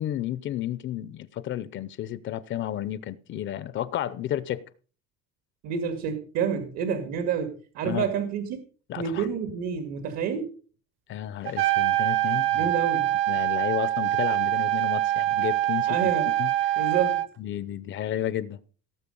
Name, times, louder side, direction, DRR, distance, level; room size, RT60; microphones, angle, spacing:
voice 1, 0.0-4.6 7.8-8.1 8.9-9.3 11.1-12.7 13.3-16.1 16.4-16.5 17.4-18.6, left 11 dB, 40° left, 0.7 m, -32 dB
voice 2, 5.6-8.6 9.0-10.5 12.6-13.1 15.9-16.3 16.8-17.3, right 7 dB, 60° right, 2.1 m, -28 dB
Trumpet, 11.5-17.3, right 14 dB, 45° right, 0.9 m, -24 dB
18.0 x 7.6 x 5.4 m
cardioid pair, 180°, 29 cm